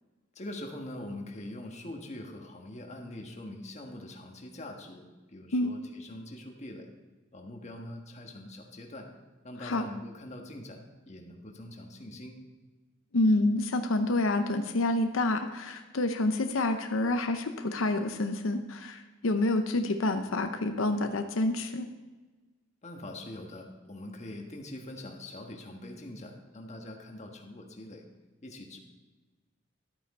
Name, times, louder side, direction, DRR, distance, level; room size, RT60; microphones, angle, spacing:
voice 1, 0.3-6.9 7.3-9.1 9.4-12.4 22.8-28.0 28.4-28.8, left 1 dB, 35° left, 2 dB, 1.4 m, -43 dB
voice 2, 13.1-21.9, left 2 dB, 90° left, 7 dB, 0.7 m, -28 dB
12.5 x 8.6 x 4.2 m, 1.2 s
head